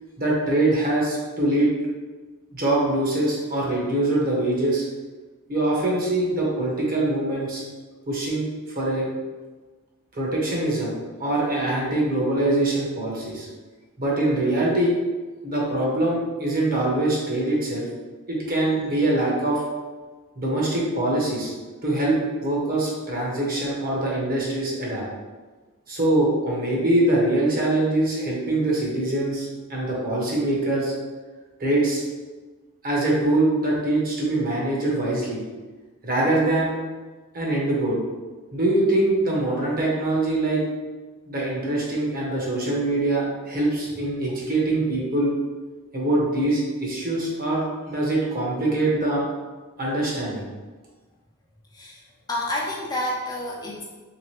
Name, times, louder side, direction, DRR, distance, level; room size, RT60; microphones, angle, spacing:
voice 1, 0.2-1.7 2.5-4.8 5.5-7.6 8.1-8.4 8.7-9.1 10.1-10.9 11.2-13.5 14.0-15.0 15.4-17.9 18.3-19.6 20.4-21.5 21.8-22.1 22.4-25.0 25.9-30.9 31.6-32.0 32.8-35.4 36.0-36.7 37.3-38.0 38.5-40.6 41.3-45.3 45.9-49.3 49.8-50.4, right 1 dB, 40° right, -4 dB, 0.9 m, -23 dB
voice 2, 51.7-53.8, left 1 dB, 20° left, -3 dB, 0.4 m, -29 dB
3.2 x 2.9 x 3.1 m, 1.3 s
head